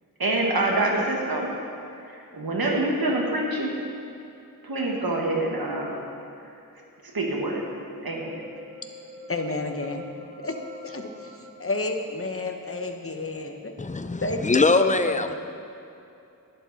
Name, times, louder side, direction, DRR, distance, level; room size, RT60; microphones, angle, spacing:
voice 1, 0.2-1.5 1.9-3.7 4.6-6.0 6.4-7.7 8.0-8.4, right 2 dB, 75° right, -1 dB, 1.7 m, -26 dB
sound 1, 7.5-11.8, left 2 dB, 50° right, 2.7 m, -44 dB
voice 2, 9.3-10.1 10.4-10.5 10.8-13.7 14.2-15.4, left 2 dB, 40° left, 4 dB, 1.0 m, -30 dB
voice 3, 13.8-15.4, left 3 dB, 20° left, 9 dB, 0.5 m, -22 dB
11.5 x 11.0 x 4.1 m, 2.7 s
wide cardioid pair, 65°, 36 cm